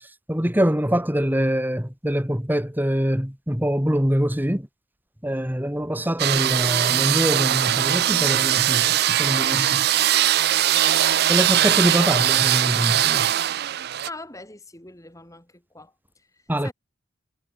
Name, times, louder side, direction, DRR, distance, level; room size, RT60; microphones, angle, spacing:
voice 1, 0.3-4.7 5.2-9.9 11.3-13.3 16.5-16.7, equal, 10° right, 2.1 m, -24 dB
sound 1, 6.2-14.1, right 12 dB, 55° right, 0.5 m, -21 dB
voice 2, 14.0-15.9 16.3-16.7, left 2 dB, 15° left, 7.6 m, -42 dB
head